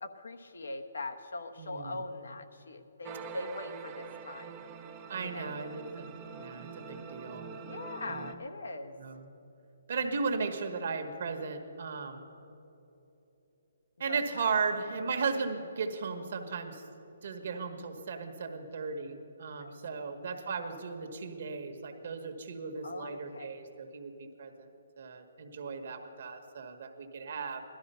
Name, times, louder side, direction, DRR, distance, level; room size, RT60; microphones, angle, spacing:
voice 1, 0.0-4.6 5.2-5.6 7.6-9.0 14.0-14.7 19.6-20.2 22.8-23.5, left 2 dB, 90° left, 6 dB, 1.1 m, -42 dB
voice 2, 1.6-2.0 5.1-7.5 8.0-8.3 9.0-9.3 9.9-12.3 14.0-16.8 17.2-24.7 25.0-27.6, right 5 dB, 50° right, 6 dB, 1.4 m, -36 dB
sound 1, 3.0-8.3, right 6 dB, 15° right, 0.5 m, -45 dB
17.0 x 12.5 x 5.6 m, 3.0 s
hypercardioid pair, 170°, 0 cm